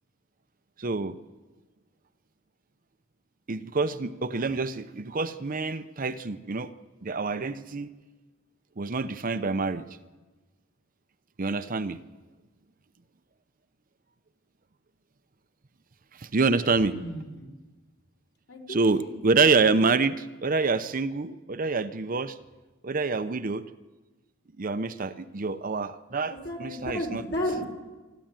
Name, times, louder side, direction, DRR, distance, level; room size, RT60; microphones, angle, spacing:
voice 1, 0.8-1.2 3.5-6.7 7.0-7.9 8.8-9.8 11.4-12.0 16.2-17.0 18.7-22.4 22.8-23.6 24.6-27.2, right 4 dB, 45° right, 11 dB, 0.7 m, -27 dB
voice 2, 16.9-17.5 18.5-19.1 26.4-27.7, equal, 60° left, 1 dB, 5.1 m, -33 dB
25.0 x 13.0 x 9.0 m, 1.2 s
head